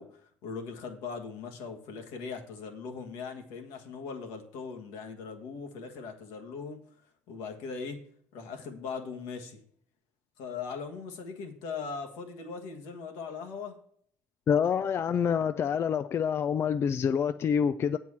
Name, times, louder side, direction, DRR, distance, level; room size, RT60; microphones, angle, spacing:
voice 1, 0.0-6.8 7.3-8.0 8.3-9.6 10.4-13.8, left 5 dB, 75° left, 1.6 m, -40 dB
voice 2, 14.5-18.0, left 7 dB, 40° left, 0.4 m, -27 dB
8.2 x 4.5 x 7.2 m
supercardioid pair, 85°, 7 cm